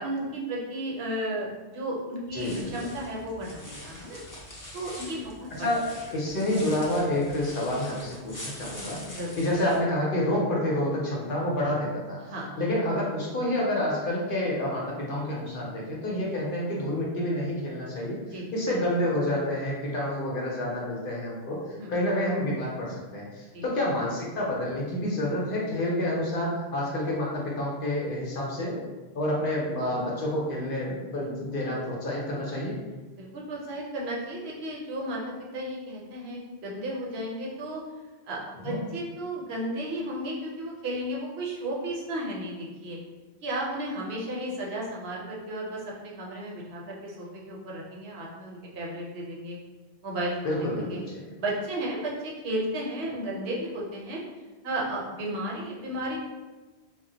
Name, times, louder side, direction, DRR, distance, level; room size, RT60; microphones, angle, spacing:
voice 1, 0.0-4.2 4.7-5.8 9.0-9.4 12.2-12.5 18.2-18.5 21.8-21.9 23.5-23.7 33.2-35.2 35.5-37.8 38.3-43.0 43.4-49.6 50.0-51.0 51.4-54.2 54.6-56.2, right 1 dB, 70° right, -3 dB, 0.9 m, -34 dB
voice 2, 2.3-2.7 5.6-5.8 6.1-12.2 12.6-18.2 18.5-28.8 29.1-32.8 38.6-38.8 50.4-51.2, left 1 dB, 55° left, -4 dB, 0.7 m, -28 dB
sound 1, 2.3-9.8, left 1 dB, 25° left, 0.4 m, -44 dB
2.1 x 2.0 x 3.7 m, 1.2 s
omnidirectional pair, 1.1 m